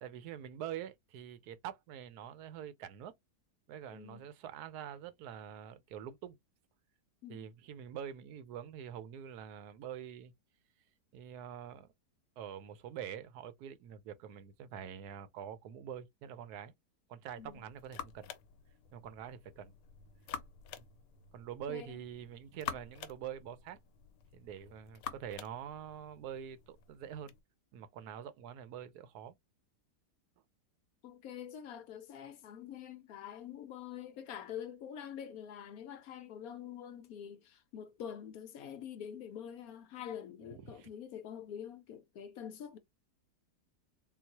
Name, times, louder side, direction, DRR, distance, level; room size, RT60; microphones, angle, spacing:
voice 1, 0.0-3.1 3.7-6.4 7.3-10.3 11.1-11.9 12.4-16.7 17.1-18.3 18.9-19.7 20.8-20.9 21.3-23.8 24.3-27.3 27.7-29.3 40.5-40.9, right 9 dB, 70° right, 1.1 m, -45 dB
voice 2, 3.9-4.2 7.2-7.5 17.4-17.6 21.7-22.0 31.0-42.8, left 9 dB, 70° left, 0.9 m, -46 dB
sound 1, 17.3-27.4, left 9 dB, 85° left, 1.2 m, -49 dB
3.8 x 2.4 x 2.8 m
omnidirectional pair, 1.8 m